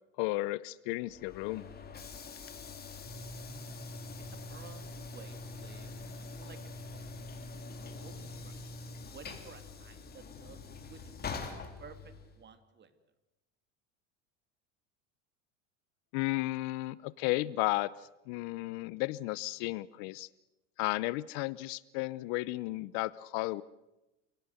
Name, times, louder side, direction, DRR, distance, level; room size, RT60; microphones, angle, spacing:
voice 1, 0.2-1.7 16.1-20.3 20.8-23.6, left 20 dB, 65° left, 19 dB, 0.8 m, -34 dB
Train / Sliding door, 1.0-12.4, left 6 dB, 25° left, 3.7 m, -46 dB
sound 1, 3.0-9.1, right 1 dB, 10° right, 4.4 m, -46 dB
voice 2, 4.3-5.9 6.4-7.6 8.0-8.6 9.1-11.5 11.8-12.0 12.3-12.9, right 6 dB, 30° right, 9 dB, 2.6 m, -54 dB
27.5 x 17.5 x 7.9 m, 0.98 s
supercardioid pair, 110°, 36 cm